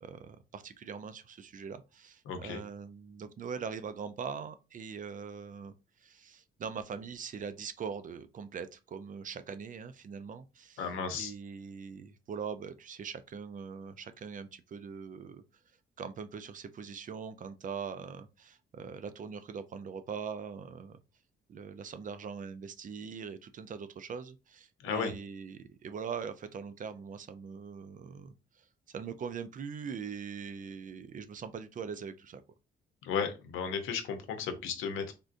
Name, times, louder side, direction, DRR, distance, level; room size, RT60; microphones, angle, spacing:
voice 1, 0.0-10.9 11.2-15.4 16.0-21.0 21.5-32.4, right 6 dB, 40° right, 0.4 m, -42 dB
voice 2, 2.3-2.6 10.8-11.3 24.8-25.1 33.0-35.1, left 6 dB, 85° left, 0.7 m, -34 dB
3.5 x 2.5 x 2.5 m
cardioid pair, 90°, 20 cm